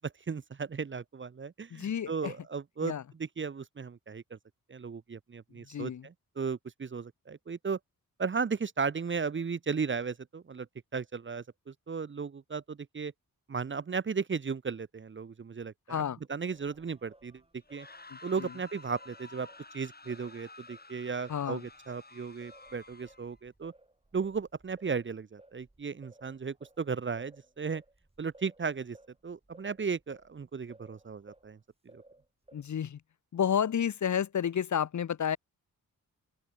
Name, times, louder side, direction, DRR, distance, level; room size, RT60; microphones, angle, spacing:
voice 1, 0.0-2.9 3.2-4.4 4.7-7.8 8.2-10.7 10.9-13.1 13.5-16.0 16.3-17.4 17.7-17.9 18.2-19.5 19.7-23.7 24.1-27.8 28.2-29.0 29.2-31.6 31.9-32.0, right 5 dB, 35° right, 0.7 m, -35 dB
voice 2, 1.7-2.3 2.8-3.0 5.7-6.1 15.9-16.2 18.1-18.5 21.3-21.6 32.5-33.0 33.3-35.4, left 8 dB, 50° left, 0.7 m, -31 dB
Singing, 16.5-20.9 21.3-31.5 31.9-32.9, right 2 dB, 15° right, 4.1 m, -60 dB
sound 1, 17.6-23.4, left 3 dB, 25° left, 3.0 m, -52 dB
open air
cardioid pair, 60°, 36 cm